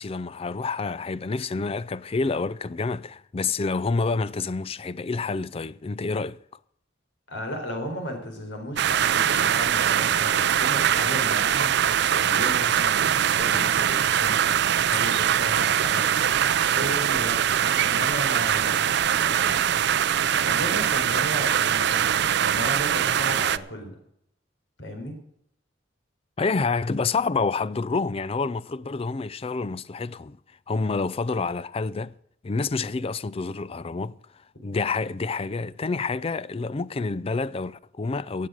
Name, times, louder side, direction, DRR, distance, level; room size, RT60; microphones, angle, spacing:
voice 1, 0.0-6.4 26.4-30.4 30.7-32.1 32.4-34.2 34.6-38.5, left 4 dB, 30° left, 0.4 m, -28 dB
voice 2, 7.3-16.1 16.7-19.6 20.4-24.0 24.8-25.2, equal, 80° left, 4.4 m, -35 dB
sound 1, 8.8-23.6, right 9 dB, 65° right, 0.5 m, -22 dB
17.5 x 7.6 x 6.4 m
head